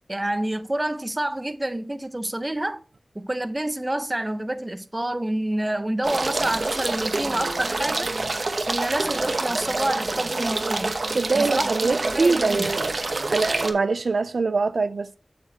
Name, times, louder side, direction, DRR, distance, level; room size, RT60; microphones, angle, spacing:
voice 1, 0.1-2.8 3.1-8.1 8.7-11.0 11.3-11.7 12.1-12.7, right 1 dB, 25° right, 0.7 m, -28 dB
sound 1, 6.0-13.7, right 2 dB, 65° right, 0.9 m, -27 dB
voice 2, 11.1-12.9 13.3-15.2, right 4 dB, 90° right, 0.4 m, -23 dB
7.3 x 6.9 x 2.8 m
wide cardioid pair, 50°, 0 cm